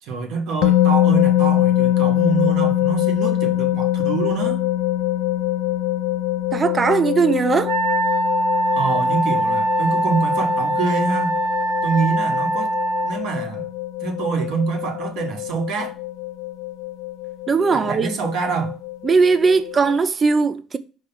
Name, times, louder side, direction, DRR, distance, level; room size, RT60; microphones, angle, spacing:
voice 1, 0.0-4.6 8.7-11.4 11.8-12.8 13.0-13.7 14.0-16.0 17.7-18.8, right 5 dB, 55° right, 1.3 m, -25 dB
sound 1, 0.6-20.0, left 13 dB, 65° left, 0.6 m, -23 dB
voice 2, 6.5-7.7 17.5-18.1 19.0-20.8, right 4 dB, 20° right, 0.3 m, -18 dB
Wind instrument woodwind instrument, 7.6-13.2, right 1 dB, 80° right, 1.5 m, -22 dB
5.7 x 3.1 x 5.3 m
cardioid pair, 180°, 0 cm